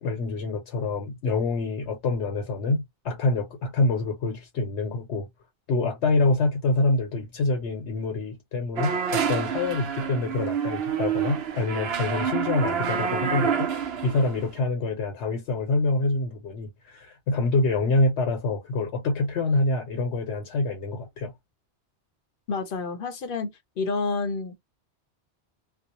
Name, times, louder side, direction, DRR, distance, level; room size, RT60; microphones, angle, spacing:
voice 1, 0.0-5.3 5.7-13.7 14.0-21.3, left 2 dB, 85° left, 1.0 m, -26 dB
sound 1, 8.8-14.5, right 7 dB, 70° right, 0.8 m, -28 dB
voice 2, 22.5-24.5, left 4 dB, 60° left, 0.7 m, -29 dB
2.5 x 2.0 x 2.7 m
omnidirectional pair, 1.1 m